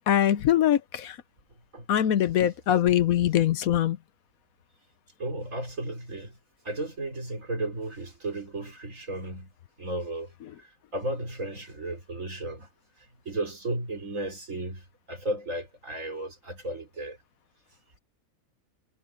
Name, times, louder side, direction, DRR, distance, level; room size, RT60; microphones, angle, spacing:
voice 1, 0.1-1.2 1.9-4.0, left 11 dB, 80° left, 1.2 m, -22 dB
voice 2, 5.2-6.3 6.6-9.5 9.8-10.3 10.9-12.7 13.3-14.8 15.1-17.2, right 1 dB, 65° right, 4.6 m, -34 dB
omnidirectional pair, 1.5 m